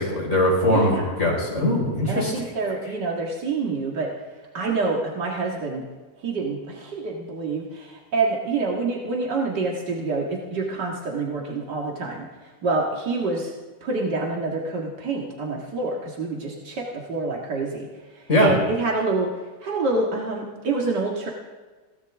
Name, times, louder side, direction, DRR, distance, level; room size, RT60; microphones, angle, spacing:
voice 1, 0.0-2.3 18.3-18.5, left 1 dB, 45° left, -2 dB, 5.2 m, -21 dB
voice 2, 0.7-1.1 2.1-4.1 4.5-5.8 6.2-12.3 12.6-13.5 13.8-17.9 18.1-19.3 19.6-21.3, right 3 dB, 85° right, -1 dB, 2.4 m, -27 dB
21.5 x 17.0 x 3.6 m, 1.3 s
omnidirectional pair, 1.8 m